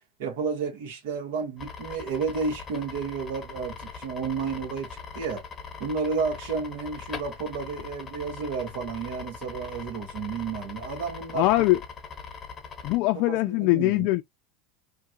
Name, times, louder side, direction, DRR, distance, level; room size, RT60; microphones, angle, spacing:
voice 1, 0.2-5.4 5.8-11.6 13.1-14.1, right 5 dB, 75° right, 1.5 m, -31 dB
sound 1, 1.6-13.0, left 5 dB, 20° left, 1.2 m, -41 dB
voice 2, 11.3-11.8 12.8-14.2, left 18 dB, 55° left, 0.4 m, -22 dB
3.2 x 2.3 x 2.7 m
supercardioid pair, 130°, 0 cm